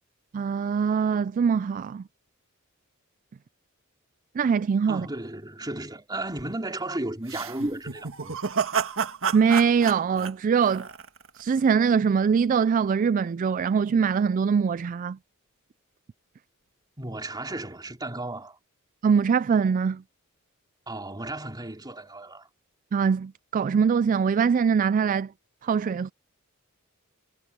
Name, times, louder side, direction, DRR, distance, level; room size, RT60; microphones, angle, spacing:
voice 1, 0.3-2.0 4.4-5.1 9.3-10.9 11.4-15.2 19.0-20.0 22.9-25.3 25.6-26.1, right 6 dB, 40° right, 0.3 m, -23 dB
voice 2, 4.9-8.4 17.0-18.6 20.9-22.5, right 2 dB, 20° right, 3.4 m, -34 dB
sound 1, 7.3-11.4, right 6 dB, 65° right, 1.8 m, -30 dB
head